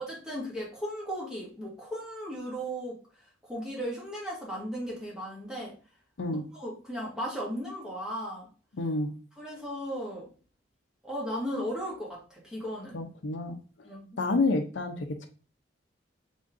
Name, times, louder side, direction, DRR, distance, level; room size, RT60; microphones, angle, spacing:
voice 1, 0.1-2.9 3.4-5.7 6.5-8.5 9.4-10.3 11.0-13.0 13.8-14.2, equal, 5° right, -5 dB, 1.7 m, -36 dB
voice 2, 8.8-9.1 12.9-13.6 14.2-15.3, left 2 dB, 75° left, 7 dB, 0.6 m, -29 dB
4.0 x 3.6 x 3.6 m, 0.37 s
head